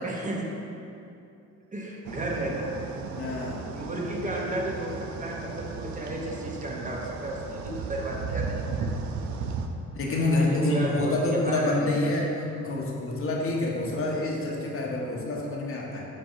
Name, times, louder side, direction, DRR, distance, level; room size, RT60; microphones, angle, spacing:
voice 1, 0.0-0.5 1.7-2.7 3.7-8.7 10.4-11.8, right 1 dB, 25° right, -3 dB, 1.0 m, -33 dB
sound 1, 2.0-9.7, right 5 dB, 70° right, 0.6 m, -35 dB
voice 2, 3.2-3.6 9.9-16.1, left 2 dB, 45° left, -2 dB, 1.1 m, -27 dB
7.6 x 2.7 x 5.7 m, 2.7 s
cardioid pair, 90°, 30 cm